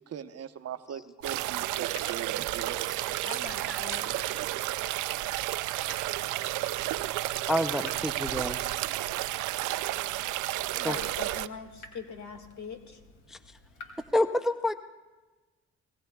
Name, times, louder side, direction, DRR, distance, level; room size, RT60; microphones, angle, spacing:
voice 1, 0.1-2.8, right 9 dB, 55° right, 9 dB, 0.9 m, -40 dB
Water tap faucet / Drip, 1.2-14.1, left 3 dB, 85° left, 2.6 m, -53 dB
sound 1, 1.2-11.5, right 16 dB, 80° right, 0.5 m, -32 dB
voice 2, 3.2-4.1 8.8-8.9 10.7-13.0, left 5 dB, 70° left, 6 dB, 1.9 m, -42 dB
voice 3, 7.5-8.7 10.8-10.9 13.3-13.4 14.1-14.7, left 1 dB, ahead, 10 dB, 0.5 m, -28 dB
25.5 x 19.0 x 2.3 m, 1.2 s
cardioid pair, 90°, 30 cm